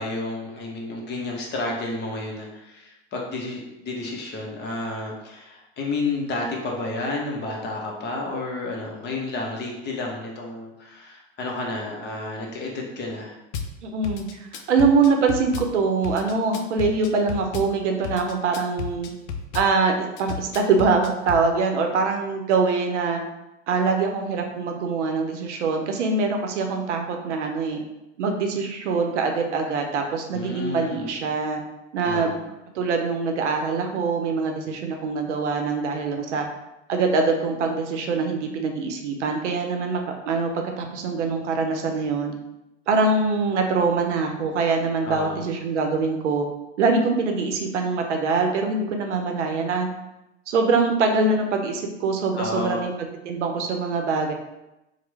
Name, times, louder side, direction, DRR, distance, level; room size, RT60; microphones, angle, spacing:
voice 1, 0.0-13.3 30.3-31.2 32.0-32.4 45.0-45.4 52.4-52.8, left 2 dB, 30° left, 0 dB, 0.7 m, -31 dB
Drum kit / Bass drum, 13.5-13.7 14.0-15.7 16.0-17.7 18.0-19.7 20.2-21.4, left 6 dB, 65° left, 0.5 m, -32 dB
voice 2, 13.8-19.1 19.5-23.2 23.7-27.8 28.2-31.6 31.9-32.3 32.7-36.5 36.9-42.3 42.9-46.5 46.8-49.9 50.5-52.9 53.2-54.3, right 4 dB, 75° right, 4 dB, 0.6 m, -23 dB
3.0 x 2.1 x 3.2 m, 0.94 s
hypercardioid pair, 90°, 36 cm